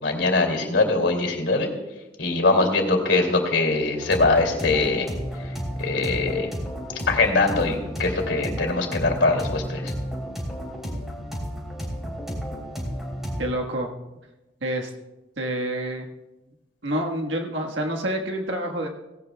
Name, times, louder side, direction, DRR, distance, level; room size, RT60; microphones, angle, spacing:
voice 1, 0.0-1.7 2.2-5.1 5.8-6.5 7.1-9.9, left 3 dB, 80° left, 3 dB, 2.6 m, -22 dB
sound 1, 4.0-13.4, equal, ahead, 3.3 m, -32 dB
voice 2, 13.4-13.9 14.6-14.9 15.4-16.1 16.8-18.9, right 1 dB, 85° right, 2 dB, 1.5 m, -27 dB
17.5 x 17.5 x 2.3 m, 1.0 s
head